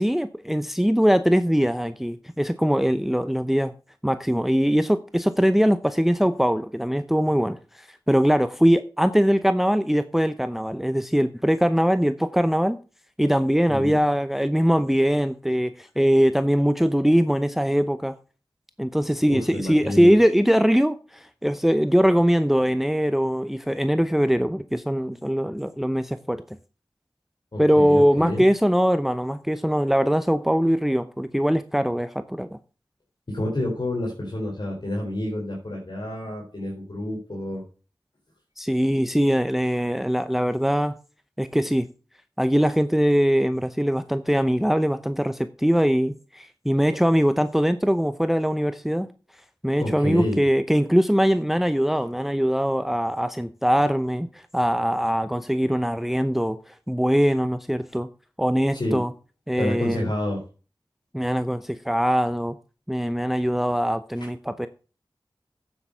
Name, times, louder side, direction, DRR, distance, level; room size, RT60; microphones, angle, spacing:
voice 1, 0.0-3.7 4.0-12.8 13.2-18.1 18.8-26.4 27.6-32.6 38.6-40.9 41.4-41.9 42.4-49.1 49.6-58.1 58.4-59.1 59.5-60.1 61.1-62.6 62.9-64.7, equal, 5° right, 0.7 m, -22 dB
voice 2, 19.3-20.1 27.5-28.4 33.3-37.6 49.8-50.4 58.7-59.0 59.5-60.4, left 1 dB, 60° left, 4.1 m, -29 dB
8.8 x 8.0 x 5.5 m
wide cardioid pair, 45°, 9 cm